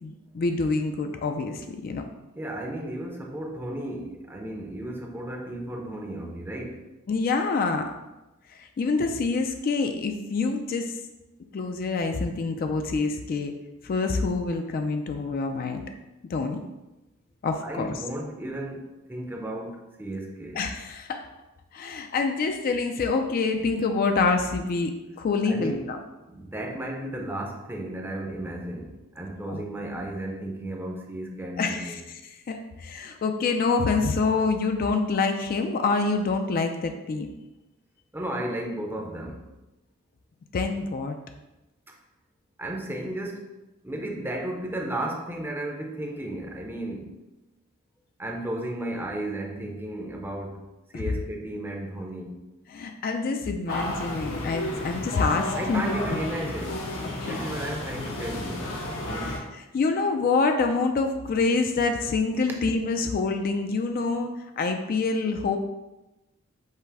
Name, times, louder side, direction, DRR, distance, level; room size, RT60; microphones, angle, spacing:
voice 1, 0.0-2.0 7.1-7.9 8.8-10.9 11.5-13.5 13.8-15.8 16.3-16.6 17.4-17.9 20.6-21.3 21.7-26.0 29.5-29.6 31.6-37.3 40.5-41.2 50.9-51.0 52.7-56.2 57.3-57.4 59.1-59.4 59.7-65.6, left 4 dB, 45° left, 6 dB, 0.3 m, -26 dB
voice 2, 2.4-6.8 17.6-20.6 25.4-25.9 26.3-32.0 38.1-39.5 41.9-42.0 42.6-43.5 43.8-47.1 48.2-50.6 50.9-52.4 55.5-56.9 57.2-58.8 59.0-59.4, right 1 dB, 10° right, 1 dB, 0.5 m, -34 dB
sound 1, 53.7-59.4, left 1 dB, 85° left, 0.9 m, -32 dB
5.5 x 2.0 x 4.7 m, 1.0 s
head